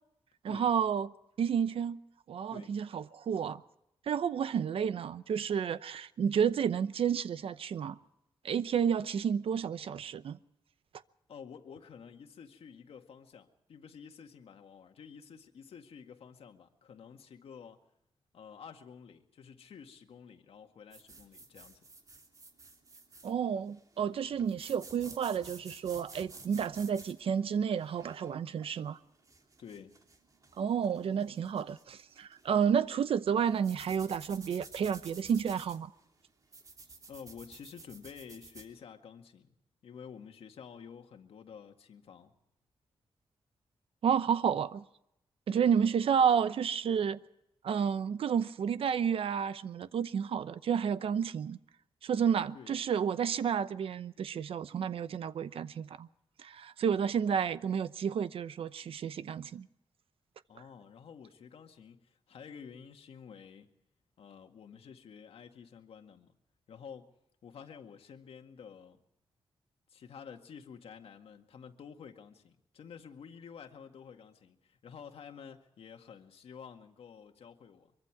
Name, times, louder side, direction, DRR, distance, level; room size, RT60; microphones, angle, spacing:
voice 1, 0.4-1.1 1.4-2.0 2.3-3.6 4.1-8.0 8.4-10.4 23.2-29.0 30.6-35.9 44.0-44.8 45.5-47.2 47.6-51.6 52.0-56.1 56.4-59.7, right 7 dB, 75° right, 0.8 m, -31 dB
voice 2, 11.3-17.8 18.3-21.9 29.6-30.0 37.1-39.5 39.8-42.3 52.5-52.8 60.5-63.7 64.2-66.4 66.7-69.0 69.9-77.9, left 7 dB, 80° left, 2.0 m, -50 dB
sound 1, 20.9-38.7, right 3 dB, 35° right, 3.0 m, -53 dB
24.5 x 23.5 x 4.8 m
wide cardioid pair, 155°, 10 cm